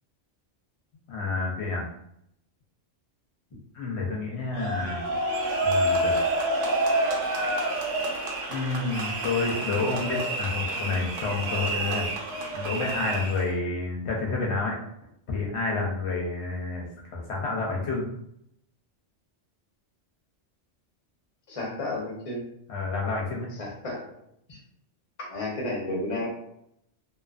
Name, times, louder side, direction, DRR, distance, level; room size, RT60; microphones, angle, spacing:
voice 1, 1.1-1.9 3.7-5.0 5.6-6.1 8.5-12.1 12.5-14.8 15.3-16.8 17.1-18.1 22.7-23.5, left 3 dB, 70° left, -2 dB, 0.8 m, -29 dB
sound 1, 4.6-13.5, right 1 dB, 55° right, 0.7 m, -28 dB
voice 2, 21.5-22.4 23.6-24.2 24.5-24.6 25.2-26.3, left 2 dB, 35° left, -2 dB, 0.7 m, -32 dB
2.6 x 2.4 x 2.3 m, 0.74 s
omnidirectional pair, 1.2 m